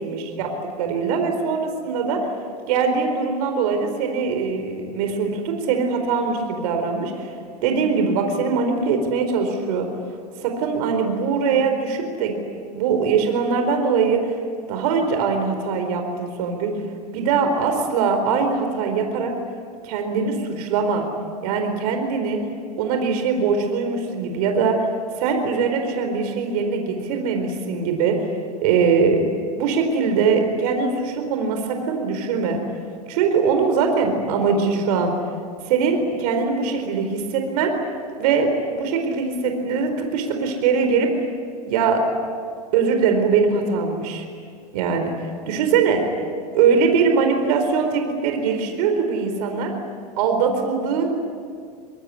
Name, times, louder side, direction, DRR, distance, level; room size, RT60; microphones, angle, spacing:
voice 1, 0.0-0.5 0.8-2.3 2.7-7.3 7.6-9.9 10.4-12.3 12.7-14.4 14.7-16.7 17.1-19.3 19.8-21.1 21.4-22.4 22.8-24.9 25.2-28.3 28.6-29.3 29.6-32.6 33.1-35.1 35.6-37.8 38.2-41.1 41.7-42.1 42.7-44.2 44.7-46.0 46.5-49.7 50.2-51.1, right 5 dB, 70° right, 5 dB, 4.5 m, -22 dB
25.0 x 22.0 x 9.9 m, 2.1 s
hypercardioid pair, 115°, 21 cm